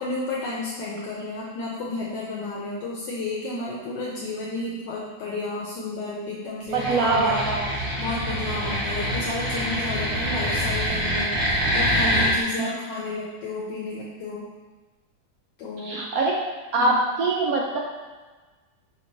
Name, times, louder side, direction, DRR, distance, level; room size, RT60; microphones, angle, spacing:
voice 1, 0.0-7.5 8.0-14.5 15.6-16.0 16.8-17.0, left 2 dB, 75° left, -5 dB, 1.2 m, -32 dB
sound 1, 6.7-12.3, equal, 15° right, 0.9 m, -25 dB
voice 2, 6.7-7.7 12.6-12.7 15.8-16.4 16.7-17.8, right 3 dB, 75° right, -2 dB, 0.8 m, -23 dB
5.0 x 3.0 x 2.6 m, 1.3 s
omnidirectional pair, 2.0 m